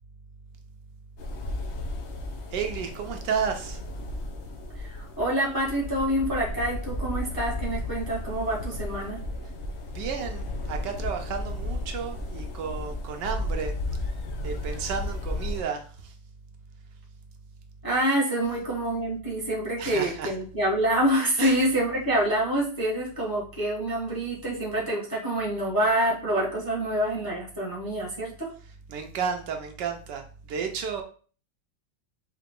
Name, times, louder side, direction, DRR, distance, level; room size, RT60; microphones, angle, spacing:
sound 1, 1.2-15.6, left 1 dB, 65° left, 0.6 m, -34 dB
voice 1, 2.5-3.8 9.8-14.1 14.4-16.1 19.8-20.3 21.4-21.6 28.9-31.0, right 6 dB, 75° right, 4 dB, 1.2 m, -32 dB
voice 2, 4.8-9.2 17.8-28.5, right 1 dB, 15° left, -4 dB, 0.9 m, -26 dB
4.8 x 3.0 x 3.6 m, 0.40 s
omnidirectional pair, 2.0 m